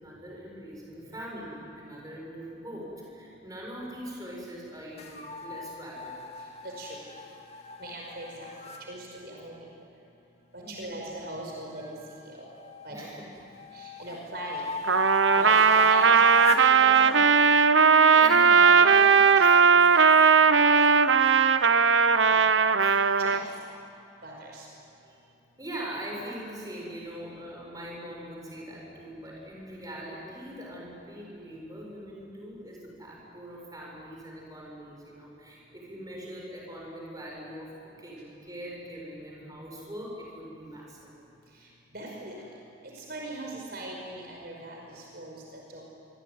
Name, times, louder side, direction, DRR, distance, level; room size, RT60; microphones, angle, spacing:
voice 1, 0.0-6.1 10.6-10.9 12.9-13.3 14.0-14.1 15.3-15.6 17.8-18.0 18.2-18.6 22.8-23.0 25.0-25.3 25.6-41.2, equal, 20° right, -2 dB, 7.4 m, -42 dB
sound 1, 5.0-8.8 11.8-13.0 13.5-16.7, left 3 dB, 35° left, 2.2 m, -36 dB
voice 2, 6.6-7.0 7.8-8.5 8.9-9.6 10.5-11.9 12.2-12.4 12.8-13.1 13.7-14.6 15.3-17.3 18.1-19.1 19.3-20.1 20.6-20.7 22.3-22.4 23.2-23.4 24.2-24.7 41.9-42.4 42.8-45.9, right 1 dB, 55° right, -1 dB, 5.3 m, -40 dB
Trumpet, 14.9-23.4, right 5 dB, 75° right, 0.8 m, -19 dB
26.0 x 23.5 x 9.5 m, 2.9 s
head